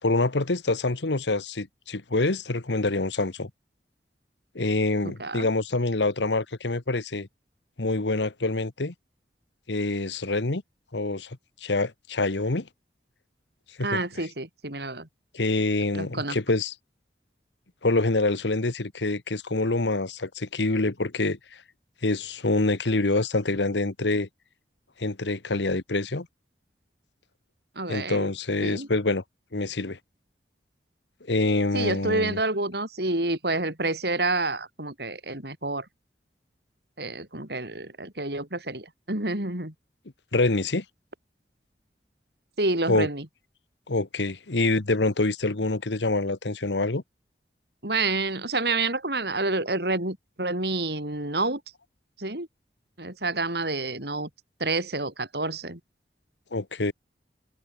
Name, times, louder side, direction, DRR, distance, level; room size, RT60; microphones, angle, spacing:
voice 1, 0.0-3.5 4.5-7.3 7.8-8.9 9.7-10.6 10.9-12.7 13.8-14.3 15.3-16.7 17.8-21.4 22.0-24.3 25.0-26.3 27.9-29.2 29.5-30.0 31.3-32.4 40.3-40.8 42.9-43.1 43.9-47.0 56.5-56.9, left 2 dB, 90° left, 1.4 m, -26 dB
voice 2, 13.8-15.1 15.9-16.4 27.8-28.3 28.6-28.9 31.7-35.8 37.0-39.7 42.6-43.2 47.8-51.6 52.2-52.5 53.0-54.3 54.6-55.8, right 2 dB, 70° right, 5.6 m, -28 dB
head